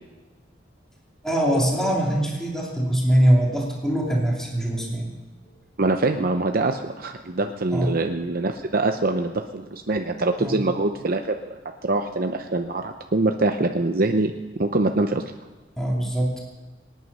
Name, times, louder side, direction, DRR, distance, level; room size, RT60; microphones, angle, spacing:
voice 1, 1.2-5.1 7.7-8.0 10.4-10.6 15.8-16.4, equal, 5° left, -3 dB, 2.8 m, -22 dB
voice 2, 5.8-14.3 14.6-15.2, right 2 dB, 50° right, 5 dB, 0.7 m, -24 dB
25.0 x 9.3 x 5.5 m, 1.3 s
head